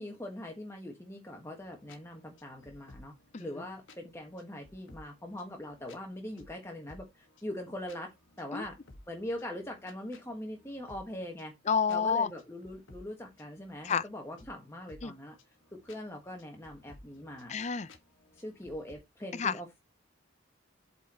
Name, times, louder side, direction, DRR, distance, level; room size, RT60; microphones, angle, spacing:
voice 1, 0.0-3.1 3.4-8.1 8.4-8.8 9.1-11.5 11.9-15.3 15.7-17.5 18.3-19.8, left 1 dB, 15° left, 1.4 m, -42 dB
sound 1, 1.5-18.9, left 2 dB, 75° left, 1.5 m, -58 dB
voice 2, 3.3-3.6 8.5-8.6 11.7-12.3 13.8-14.0 15.0-15.1 17.5-17.9 19.4-19.5, left 6 dB, 35° left, 0.5 m, -29 dB
8.3 x 4.4 x 4.3 m
head